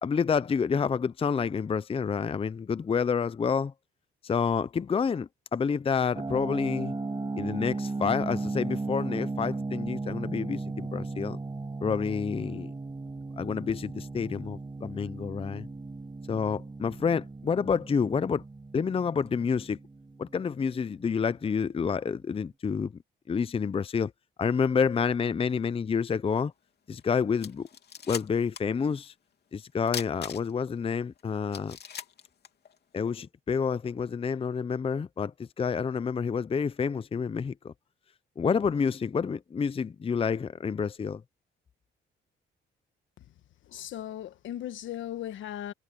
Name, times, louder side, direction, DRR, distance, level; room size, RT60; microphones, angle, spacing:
voice 1, 0.0-3.7 4.2-6.9 7.4-11.4 11.8-12.7 13.4-15.7 16.3-18.4 18.7-19.8 20.2-22.9 23.3-24.1 24.4-26.5 26.9-27.7 28.1-29.1 29.5-31.8 32.9-37.7 38.4-41.2, left 6 dB, 30° left, 0.6 m, -28 dB
sound 1, 6.1-20.9, right 3 dB, 20° right, 5.0 m, -36 dB
sound 2, 27.0-27.1 27.4-28.8 29.0-29.1 29.9-30.7 31.2-31.3 31.5-33.0, left 8 dB, 55° left, 3.1 m, -39 dB
voice 2, 43.7-45.7, left 11 dB, 75° left, 1.6 m, -37 dB
cardioid pair, 90°, 20 cm